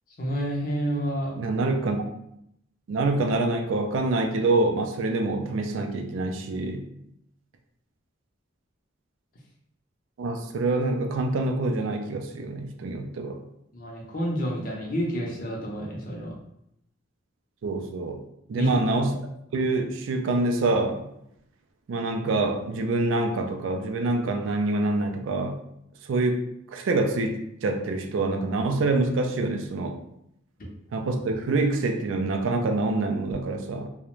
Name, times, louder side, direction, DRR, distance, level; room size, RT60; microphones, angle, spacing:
voice 1, 0.2-1.3 13.7-16.3 18.5-19.0, equal, 45° left, -1 dB, 0.5 m, -29 dB
voice 2, 1.4-2.0 2.9-6.8 10.2-13.4 17.6-18.2 18.5-19.2 19.5-21.0 21.9-25.6 26.1-26.4 26.7-30.0 30.9-33.9, right 2 dB, 80° right, 5 dB, 0.4 m, -26 dB
2.4 x 2.1 x 3.0 m, 0.77 s
head